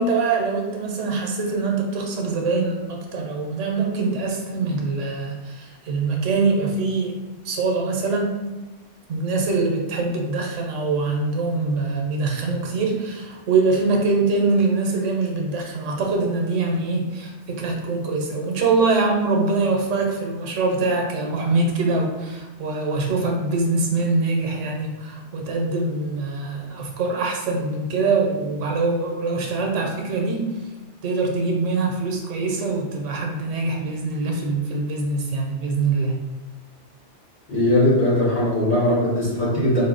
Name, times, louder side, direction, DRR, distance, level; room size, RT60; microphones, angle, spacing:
voice 1, 0.0-7.2 7.4-8.4 9.1-30.5 31.0-36.2, right 3 dB, 90° right, 1 dB, 1.0 m, -23 dB
voice 2, 37.5-39.8, left 1 dB, 45° left, -6 dB, 1.1 m, -19 dB
4.1 x 2.1 x 3.7 m, 1.1 s
omnidirectional pair, 1.2 m